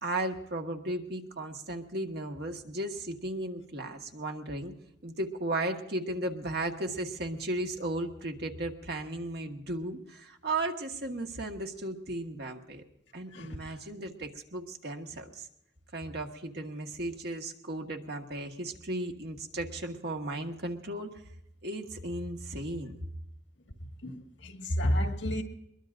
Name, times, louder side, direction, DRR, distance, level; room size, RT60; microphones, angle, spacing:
voice 1, 0.0-4.7 5.0-12.8 13.1-15.5 15.9-21.2 21.6-22.9, right 2 dB, 60° right, 1.5 m, -35 dB
voice 2, 24.0-25.4, equal, 70° left, 1.9 m, -30 dB
22.0 x 21.5 x 2.6 m
head